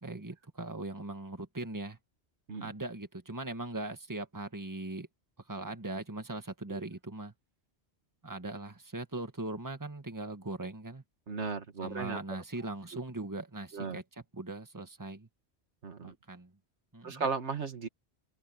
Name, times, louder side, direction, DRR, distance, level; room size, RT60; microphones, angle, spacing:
voice 1, 0.0-2.0 2.6-5.1 5.5-7.3 8.2-11.0 11.8-14.0 14.3-15.3 16.0-16.5 16.9-17.2, right 2 dB, 15° right, 1.8 m, -40 dB
voice 2, 11.3-12.2 13.7-14.0 15.8-16.2 17.0-17.9, right 5 dB, 90° right, 2.0 m, -35 dB
omnidirectional pair, 1.1 m